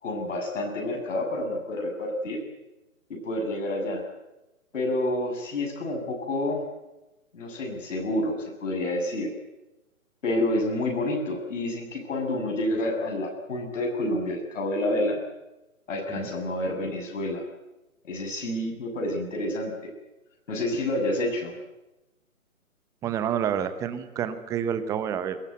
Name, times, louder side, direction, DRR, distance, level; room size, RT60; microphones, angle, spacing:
voice 1, 0.0-2.4 3.1-4.0 4.7-6.6 7.3-9.3 10.2-15.2 15.9-17.4 18.0-19.7 20.5-21.6, left 1 dB, 60° left, 2 dB, 7.3 m, -28 dB
voice 2, 23.0-25.4, right 8 dB, 10° right, 12 dB, 0.8 m, -28 dB
22.0 x 18.0 x 9.3 m, 0.98 s
figure-of-eight pair, 140°, 42 cm